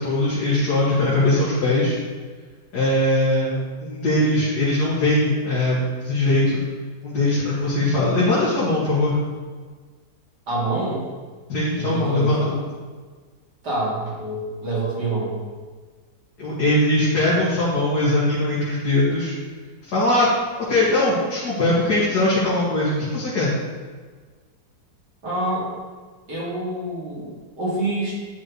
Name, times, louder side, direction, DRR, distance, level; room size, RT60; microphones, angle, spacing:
voice 1, 0.0-2.0 2.7-6.6 7.0-9.2 11.5-12.4 16.4-19.3 19.8-20.3 20.7-23.5, left 1 dB, 60° left, -10 dB, 2.7 m, -20 dB
voice 2, 10.5-11.0 11.8-12.5 13.6-15.4 25.2-25.7 26.3-28.1, right 2 dB, 65° right, -7 dB, 3.2 m, -26 dB
11.0 x 6.0 x 3.3 m, 1.5 s
omnidirectional pair, 2.0 m